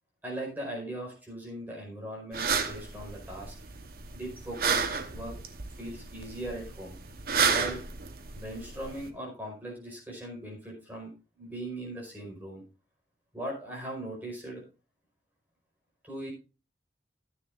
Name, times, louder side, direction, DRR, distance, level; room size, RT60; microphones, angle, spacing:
voice 1, 0.2-3.5 4.1-5.3 5.7-7.0 7.5-7.8 8.3-11.1 11.4-12.6 13.3-14.6 16.0-16.3, right 1 dB, 10° right, -2 dB, 4.7 m, -39 dB
sound 1, 2.3-9.1, right 5 dB, 55° right, 1.1 m, -32 dB
14.5 x 9.8 x 2.5 m, 0.31 s
head